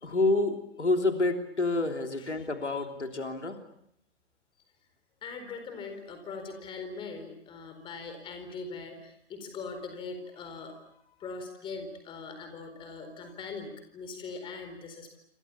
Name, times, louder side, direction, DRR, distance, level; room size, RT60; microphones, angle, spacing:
voice 1, 0.0-3.6, left 2 dB, 75° left, 5 dB, 3.4 m, -28 dB
voice 2, 5.2-15.1, left 4 dB, 15° left, 7 dB, 4.3 m, -41 dB
27.5 x 27.0 x 7.1 m, 0.72 s
figure-of-eight pair, 125°, 35 cm